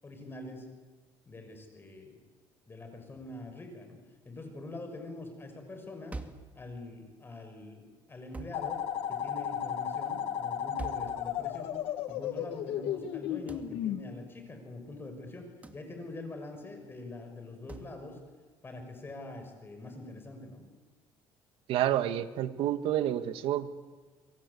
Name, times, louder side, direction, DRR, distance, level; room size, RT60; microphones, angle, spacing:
voice 1, 0.0-0.7 1.3-2.2 2.7-4.0 4.2-6.2 6.5-8.8 9.1-11.8 12.1-18.2 18.6-20.6, left 2 dB, 25° left, 5 dB, 6.3 m, -44 dB
sound 1, 6.1-6.5 8.3-8.7 10.8-11.2 13.5-13.7 15.6-15.9 17.7-18.0, right 2 dB, 15° right, 2.3 m, -42 dB
sound 2, 8.5-14.0, left 10 dB, 75° left, 1.6 m, -34 dB
voice 2, 21.7-23.7, right 11 dB, 75° right, 10 dB, 1.6 m, -29 dB
27.5 x 23.0 x 8.4 m, 1.4 s
cardioid pair, 110°, 10 cm